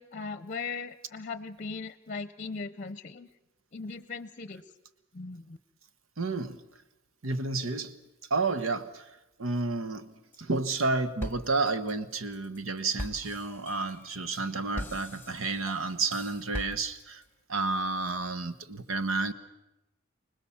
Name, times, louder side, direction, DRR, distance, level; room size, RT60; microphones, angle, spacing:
voice 1, 0.0-3.3 3.7-4.7 5.1-5.6, left 4 dB, 40° left, 0.7 m, -38 dB
voice 2, 6.2-6.6 7.2-8.0 8.3-9.1 9.4-17.2 17.5-19.3, right 3 dB, 80° right, 1.2 m, -31 dB
sound 1, 10.3-10.9 11.2-17.2, left 1 dB, 10° left, 1.3 m, -42 dB
26.0 x 19.5 x 7.2 m
head